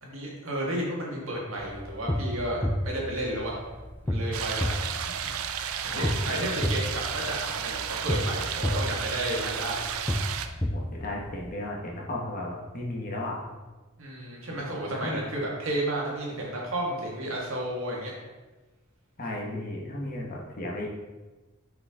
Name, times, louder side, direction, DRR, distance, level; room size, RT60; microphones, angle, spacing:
voice 1, 0.0-3.6 4.0-5.2 5.8-9.9 14.0-18.1, right 1 dB, 70° right, -2 dB, 1.8 m, -32 dB
sound 1, 1.6-11.5, left 1 dB, 10° left, 0.4 m, -32 dB
sound 2, 4.3-10.5, right 8 dB, 85° right, 0.5 m, -33 dB
voice 2, 5.9-6.4 10.7-13.4 14.5-14.6 14.9-15.2 19.2-20.9, left 1 dB, 45° left, -2 dB, 1.2 m, -35 dB
5.7 x 5.5 x 3.6 m, 1.2 s
head